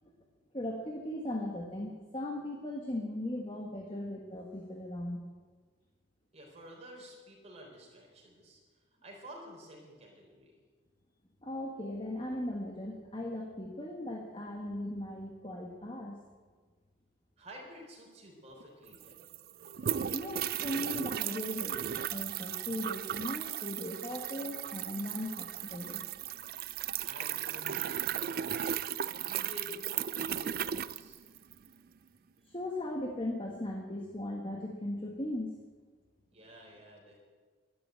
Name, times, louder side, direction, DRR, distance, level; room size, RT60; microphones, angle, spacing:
voice 1, 0.5-5.2 11.4-16.2 20.1-21.8 22.1-26.0 32.5-35.6, left 1 dB, 25° left, 1 dB, 1.4 m, -38 dB
voice 2, 6.3-8.6 9.0-10.5 17.4-19.2 27.0-28.7 29.2-31.2 36.3-37.2, equal, 30° right, -1 dB, 4.1 m, -50 dB
sound 1, 18.6-18.7 18.9-31.7, right 10 dB, 45° right, 0.4 m, -36 dB
12.0 x 12.0 x 9.2 m, 1.5 s
head